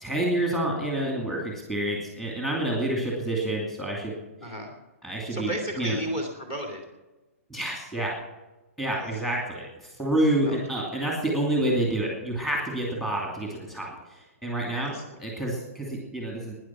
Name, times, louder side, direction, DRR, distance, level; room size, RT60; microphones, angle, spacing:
voice 1, 0.0-4.2 5.0-6.0 7.5-8.2 8.8-14.9 15.2-16.5, right 1 dB, 5° left, -2 dB, 2.6 m, -28 dB
voice 2, 4.4-4.7 5.3-6.8 8.9-9.3 10.4-10.6 14.7-15.0, equal, 20° left, 1 dB, 2.5 m, -33 dB
19.0 x 10.0 x 5.9 m, 1.1 s
hypercardioid pair, 175°, 8 cm